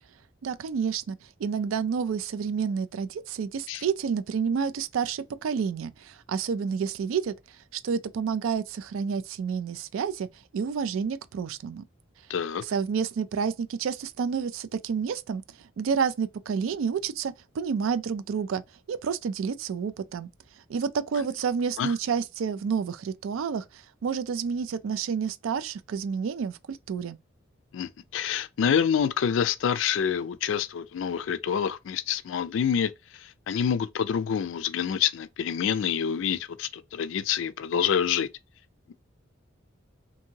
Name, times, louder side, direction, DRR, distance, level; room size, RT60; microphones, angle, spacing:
voice 1, 0.4-7.3 7.7-10.3 10.5-11.8 12.6-18.6 18.9-20.3 20.7-27.2, right 6 dB, 85° right, 0.3 m, -29 dB
voice 2, 12.3-12.6 21.8-21.9 27.7-32.9 33.5-38.3, left 8 dB, 70° left, 0.3 m, -27 dB
2.8 x 2.6 x 2.7 m
head